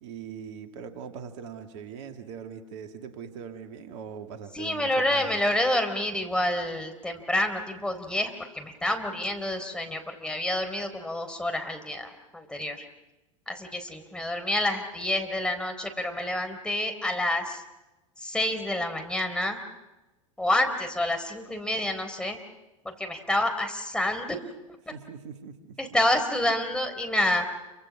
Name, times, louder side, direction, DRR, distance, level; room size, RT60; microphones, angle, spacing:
voice 1, 0.0-5.4 24.9-25.8, right 7 dB, 60° right, 6 dB, 2.2 m, -41 dB
voice 2, 4.5-12.8 13.5-17.6 18.2-19.6 20.4-22.4 22.8-24.4 25.8-27.4, left 1 dB, 5° left, 5 dB, 4.2 m, -28 dB
28.5 x 25.5 x 6.2 m, 1.0 s
figure-of-eight pair, 85°, 17 cm